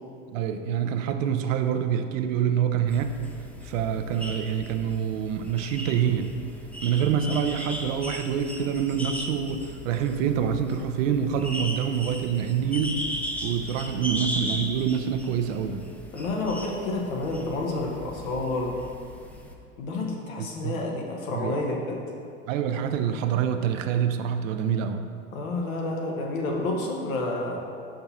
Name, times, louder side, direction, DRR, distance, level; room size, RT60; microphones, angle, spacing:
voice 1, 0.3-3.2 3.6-6.3 6.8-13.0 13.4-15.9 20.4-20.8 21.3-21.6 22.5-25.0, right 8 dB, 70° right, 8 dB, 0.7 m, -26 dB
sound 1, 2.9-19.5, equal, 5° left, 0.6 m, -37 dB
voice 2, 16.1-18.8 19.8-22.0 25.3-27.6, left 2 dB, 80° left, 0 dB, 1.3 m, -29 dB
5.7 x 5.2 x 4.1 m, 2.5 s
hypercardioid pair, 90°, 40 cm